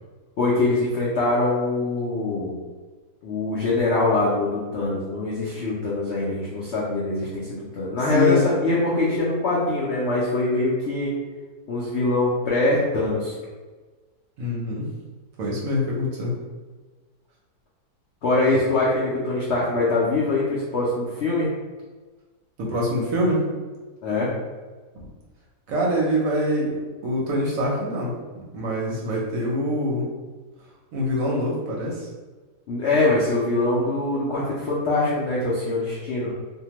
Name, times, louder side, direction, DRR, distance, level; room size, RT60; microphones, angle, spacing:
voice 1, 0.4-2.5 3.2-11.1 11.7-13.3 18.2-21.5 24.0-24.3 32.7-36.3, left 2 dB, 80° left, -6 dB, 0.6 m, -23 dB
voice 2, 8.1-8.4 14.4-14.9 15.4-16.3 22.6-23.4 24.9-25.1 25.7-30.0 30.9-32.1, equal, 65° right, -3 dB, 0.9 m, -25 dB
2.7 x 2.1 x 2.9 m, 1.3 s
omnidirectional pair, 1.8 m